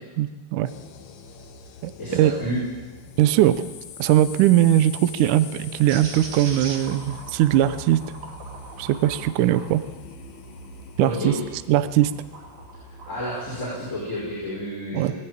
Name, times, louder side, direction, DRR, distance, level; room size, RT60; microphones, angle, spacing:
voice 1, 0.2-0.7 1.8-2.3 3.2-3.6 4.0-8.0 8.8-9.8 11.0-11.3 11.7-12.1 14.9-15.1, right 13 dB, 75° right, 13 dB, 2.0 m, -20 dB
sound 1, 0.6-14.5, left 3 dB, 65° left, 2.3 m, -43 dB
voice 2, 2.0-2.6 11.0-11.3 13.1-15.2, equal, 20° left, -6 dB, 6.0 m, -30 dB
sound 2, 5.9-11.5 12.0-13.2, right 3 dB, 60° right, 3.8 m, -41 dB
19.5 x 16.5 x 8.9 m, 1.3 s
omnidirectional pair, 4.2 m